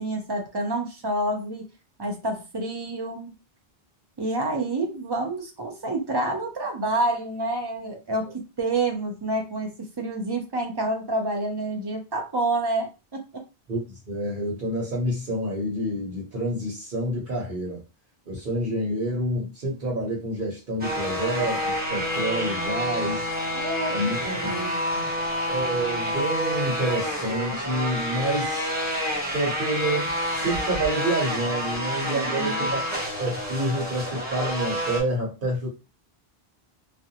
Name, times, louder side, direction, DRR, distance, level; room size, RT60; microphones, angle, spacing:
voice 1, 0.0-1.7 2.0-3.3 4.2-13.2 23.5-25.1 32.1-32.7, right 2 dB, 35° right, 2 dB, 0.4 m, -28 dB
voice 2, 13.7-17.8 18.3-23.2 23.9-24.2 24.4-24.5 25.5-28.7 29.3-35.7, right 1 dB, 60° right, -2 dB, 1.0 m, -28 dB
sound 1, 20.8-35.0, equal, 10° right, 0.9 m, -28 dB
2.5 x 2.1 x 2.7 m, 0.29 s
omnidirectional pair, 1.1 m